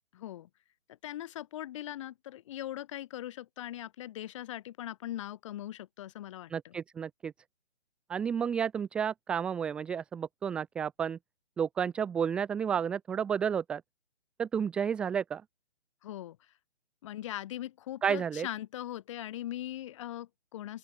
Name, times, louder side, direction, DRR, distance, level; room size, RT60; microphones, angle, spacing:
voice 1, 0.1-0.5 1.0-6.8 16.0-16.4 17.0-20.8, left 13 dB, 25° left, 5.4 m, -40 dB
voice 2, 6.5-7.3 8.1-11.2 11.6-13.8 14.4-15.4 18.0-18.5, right 7 dB, 5° right, 1.0 m, -31 dB
open air
hypercardioid pair, 170°, 35 cm